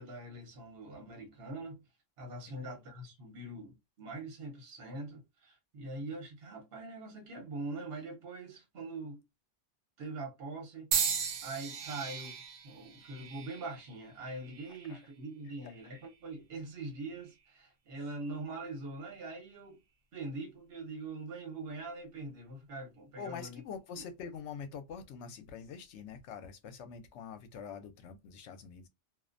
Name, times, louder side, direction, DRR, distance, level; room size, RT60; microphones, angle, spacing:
voice 1, 0.0-1.8 2.2-9.2 10.0-12.3 12.6-19.8 20.1-23.6, right 2 dB, 60° right, 1.1 m, -43 dB
sound 1, 10.9-15.0 15.8-16.2 17.1-17.3, right 7 dB, 85° right, 1.0 m, -37 dB
voice 2, 23.2-28.9, left 6 dB, 75° left, 0.9 m, -45 dB
2.4 x 2.1 x 2.5 m
omnidirectional pair, 1.2 m